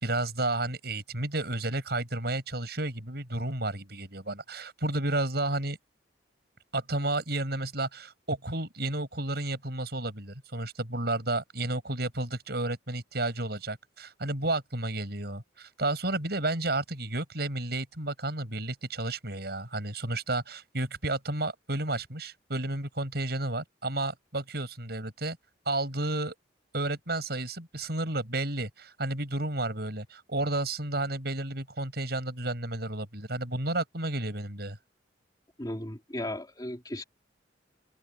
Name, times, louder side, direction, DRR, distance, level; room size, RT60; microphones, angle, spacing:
voice 1, 0.0-5.8 6.7-25.4 25.7-26.3 26.7-34.8, right 2 dB, 60° right, 7.9 m, -32 dB
voice 2, 35.6-37.0, left 1 dB, 20° left, 3.1 m, -36 dB
head